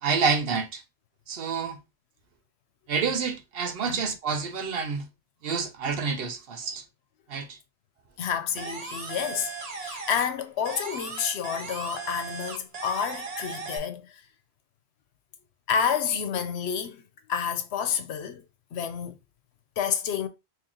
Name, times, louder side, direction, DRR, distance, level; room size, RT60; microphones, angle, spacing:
voice 1, 0.0-0.8 1.3-1.8 2.9-5.1 5.4-6.8 7.3-7.6, right 5 dB, 70° right, 0.8 m, -28 dB
voice 2, 8.2-14.2 15.7-17.0 17.3-18.4 18.7-19.2 19.8-20.3, left 7 dB, 85° left, 0.9 m, -29 dB
sound 1, 8.6-10.4 10.6-13.8, right 4 dB, 40° right, 0.8 m, -37 dB
2.9 x 2.9 x 3.8 m
omnidirectional pair, 1.1 m